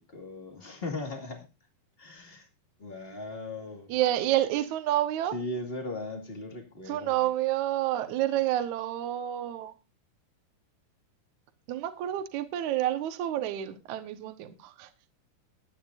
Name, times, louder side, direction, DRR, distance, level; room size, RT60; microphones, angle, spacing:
voice 1, 0.1-1.5 2.0-2.5 2.8-3.9 5.3-7.2, left 2 dB, 25° left, 4 dB, 1.4 m, -38 dB
voice 2, 3.9-5.3 6.9-9.7 11.7-14.9, right 13 dB, 65° right, 9 dB, 2.2 m, -29 dB
20.5 x 9.4 x 2.6 m, 0.25 s
omnidirectional pair, 4.6 m